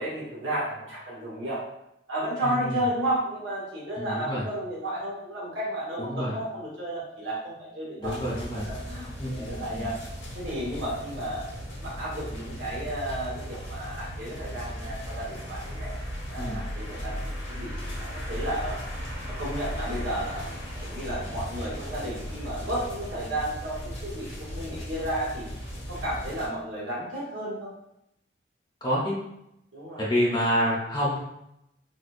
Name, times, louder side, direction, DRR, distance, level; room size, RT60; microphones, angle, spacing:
voice 1, 0.0-1.6 2.1-10.0 10.3-11.4 11.8-16.0 16.3-18.8 19.4-25.5 25.9-27.7 29.7-30.0, right 1 dB, 80° right, -7 dB, 1.4 m, -33 dB
voice 2, 2.4-2.8 4.0-4.4 6.0-6.4 8.0-8.7 9.2-9.9 16.4-16.6 28.8-29.2 30.0-31.2, equal, 20° left, -6 dB, 0.7 m, -28 dB
sound 1, 8.0-26.5, equal, 90° left, 1.2 m, -36 dB
4.1 x 2.3 x 2.5 m, 0.81 s
head